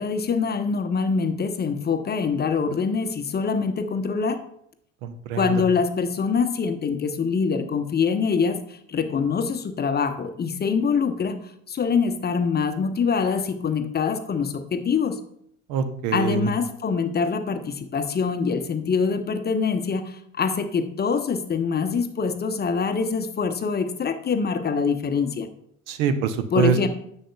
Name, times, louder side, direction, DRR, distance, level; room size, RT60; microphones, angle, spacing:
voice 1, 0.0-4.4 5.4-8.6 8.9-11.4 11.7-15.2 16.1-25.5 26.5-26.9, left 5 dB, 25° left, 9 dB, 0.8 m, -24 dB
voice 2, 5.0-5.5 15.7-16.5 25.9-26.8, right 6 dB, 65° right, 11 dB, 0.8 m, -24 dB
10.0 x 7.1 x 2.3 m, 0.69 s
hypercardioid pair, 65°, 38 cm